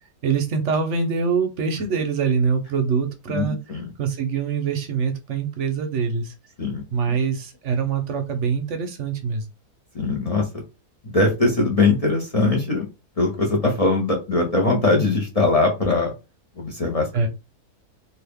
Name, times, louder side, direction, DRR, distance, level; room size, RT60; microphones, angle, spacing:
voice 1, 0.2-3.6 4.0-6.3 6.9-9.5 17.1-17.3, right 5 dB, 60° right, 6 dB, 0.8 m, -24 dB
voice 2, 3.3-3.9 6.6-6.8 9.9-10.4 11.0-12.9 13.2-16.1 16.6-17.3, left 3 dB, 40° left, 0 dB, 0.5 m, -21 dB
2.9 x 2.6 x 3.4 m, 0.27 s
omnidirectional pair, 1.7 m